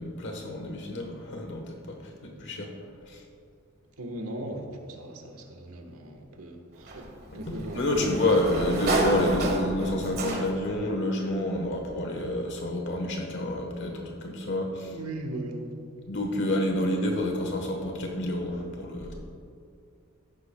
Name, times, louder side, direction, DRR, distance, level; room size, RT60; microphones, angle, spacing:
voice 1, 0.0-2.7 3.1-3.2 7.5-14.9 16.1-19.1, left 1 dB, 55° left, 2 dB, 1.3 m, -29 dB
voice 2, 4.0-7.1 7.3-8.1 14.9-15.7, right 1 dB, 80° right, 3 dB, 1.4 m, -38 dB
Sliding door, 6.9-10.8, right 1 dB, 50° right, 1.4 m, -30 dB
14.5 x 11.5 x 2.3 m, 2.4 s
head